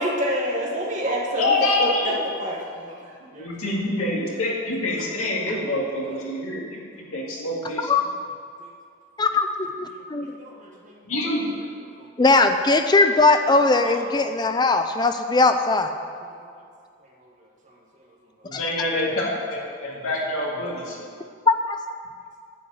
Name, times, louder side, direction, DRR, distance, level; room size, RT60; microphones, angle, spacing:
voice 1, 0.0-3.7 8.6-8.7 10.2-11.3 11.9-12.1 13.9-14.0 16.3-16.6 17.2-17.3 17.6-17.8, equal, 35° right, -2 dB, 1.6 m, -29 dB
voice 2, 1.4-2.1 3.4-6.8 7.1-7.9 11.1-11.5 18.4-21.0, left 2 dB, 90° left, -3 dB, 2.2 m, -26 dB
voice 3, 9.2-9.5 10.1-10.3 12.2-16.0 18.5-18.6 21.5-21.8, left 3 dB, 20° left, 8 dB, 0.4 m, -19 dB
10.5 x 5.2 x 8.2 m, 2.2 s
head